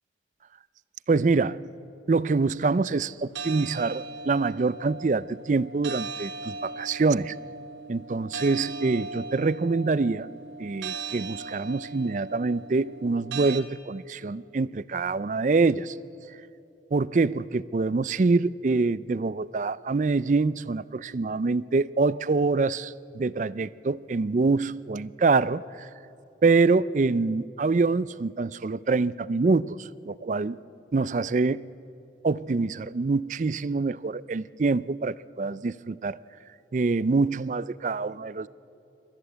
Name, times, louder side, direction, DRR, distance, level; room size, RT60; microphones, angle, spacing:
voice 1, 1.1-1.6 2.1-7.4 7.9-10.3 10.6-15.9 16.9-25.9 26.4-30.6 30.9-31.7 32.2-36.2 36.7-38.5, right 3 dB, 40° right, 18 dB, 0.4 m, -25 dB
sound 1, 3.4-13.6, right 4 dB, 80° right, 1.5 m, -38 dB
27.5 x 13.5 x 8.0 m, 2.9 s
head